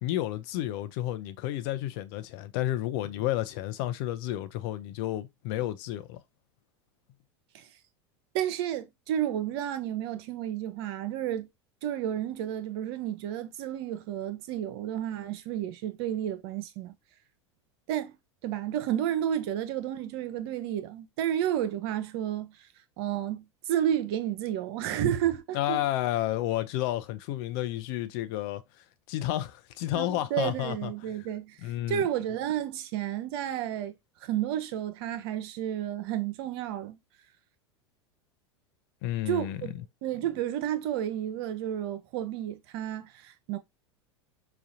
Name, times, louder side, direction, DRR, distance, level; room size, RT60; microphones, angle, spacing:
voice 1, 0.0-6.2 25.5-28.6 29.1-30.9 31.6-32.0 39.0-39.6, left 14 dB, 55° left, 0.7 m, -31 dB
voice 2, 8.3-11.5 11.8-16.9 17.9-18.1 18.4-22.5 23.0-25.8 29.9-33.9 34.2-37.0 39.3-39.7 40.0-43.6, right 11 dB, 55° right, 0.7 m, -31 dB
5.1 x 2.4 x 2.7 m
figure-of-eight pair, 85°, 15 cm